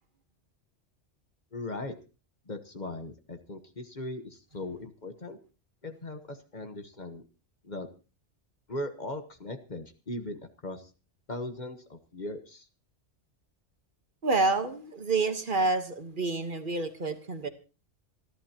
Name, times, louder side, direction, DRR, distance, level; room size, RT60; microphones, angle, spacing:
voice 1, 1.5-2.0 2.5-5.4 5.8-7.2 7.6-7.9 8.7-10.9 11.3-12.7, left 1 dB, 40° left, 8 dB, 1.3 m, -39 dB
voice 2, 14.2-17.5, right 3 dB, 45° right, 8 dB, 1.4 m, -28 dB
27.5 x 11.5 x 2.9 m, 0.33 s
omnidirectional pair, 1.2 m